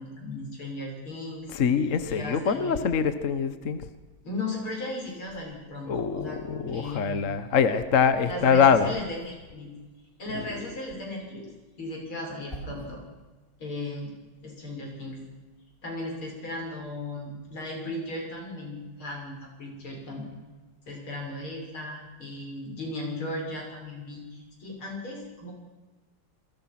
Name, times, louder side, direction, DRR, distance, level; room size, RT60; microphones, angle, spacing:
voice 1, 0.0-1.6 2.1-2.8 4.2-7.3 8.2-9.7 10.2-11.5 11.8-13.0 13.6-14.1 14.4-15.2 15.8-20.3 20.9-25.5, left 1 dB, 80° left, 0 dB, 7.3 m, -36 dB
voice 2, 1.5-3.8 5.9-8.9 10.3-10.5, left 6 dB, 45° left, 10 dB, 1.4 m, -24 dB
sound 1, 5.0-6.3 6.7-10.2 11.3-13.1 13.6-14.5, right 2 dB, 25° left, 6.8 m, -50 dB
28.5 x 22.0 x 6.1 m, 1.3 s
omnidirectional pair, 2.3 m